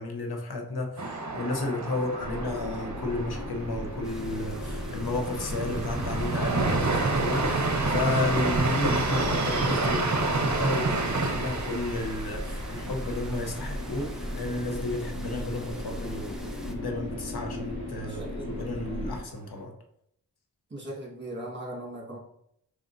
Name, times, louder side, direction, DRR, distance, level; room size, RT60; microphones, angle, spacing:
voice 1, 0.0-16.4 16.7-19.7, left 2 dB, 80° left, 3 dB, 0.8 m, -32 dB
sound 1, 1.0-14.7 15.0-15.1 15.5-16.1, right 3 dB, 50° right, 0.7 m, -29 dB
voice 2, 1.9-2.5 18.0-19.0 20.7-22.2, right 1 dB, 30° right, -3 dB, 1.7 m, -40 dB
sound 2, 2.2-19.2, left 1 dB, 30° left, 1.4 m, -37 dB
sound 3, 4.0-16.7, right 1 dB, ahead, 0.6 m, -44 dB
4.9 x 3.7 x 2.6 m, 0.72 s
wide cardioid pair, 60°, 38 cm